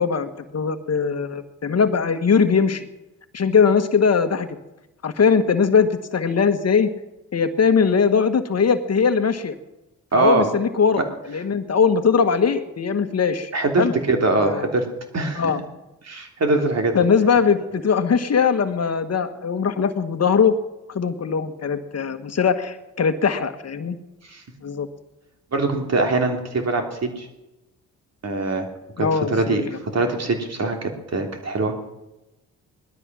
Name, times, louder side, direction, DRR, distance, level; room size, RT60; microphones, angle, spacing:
voice 1, 0.0-2.9 3.3-4.5 5.0-6.9 7.3-9.5 10.1-13.5 13.8-13.9 14.4-14.7 15.4-15.6 16.9-20.6 20.9-24.0 24.6-24.9 29.0-29.7, left 6 dB, 45° left, 9 dB, 1.4 m, -20 dB
voice 2, 10.1-10.5 13.5-14.9 15.1-15.5 16.0-16.9 24.3-24.4 25.5-27.3 28.2-28.7 29.0-31.7, right 3 dB, 50° right, 4 dB, 3.2 m, -22 dB
19.0 x 12.5 x 6.2 m, 0.99 s
supercardioid pair, 60°, 34 cm